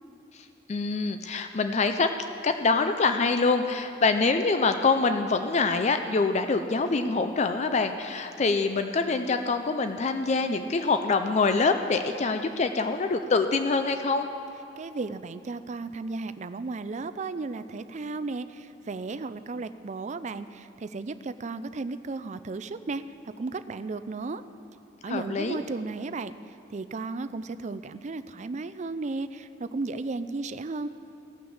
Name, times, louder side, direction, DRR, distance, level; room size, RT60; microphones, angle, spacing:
voice 1, 0.3-2.1 2.4-14.3 25.0-25.6, left 4 dB, 40° left, 8 dB, 0.5 m, -25 dB
voice 2, 14.8-23.0 23.4-24.4 25.0-26.3 26.7-30.9, right 3 dB, 40° right, 12 dB, 0.4 m, -34 dB
16.5 x 6.1 x 7.1 m, 2.9 s
head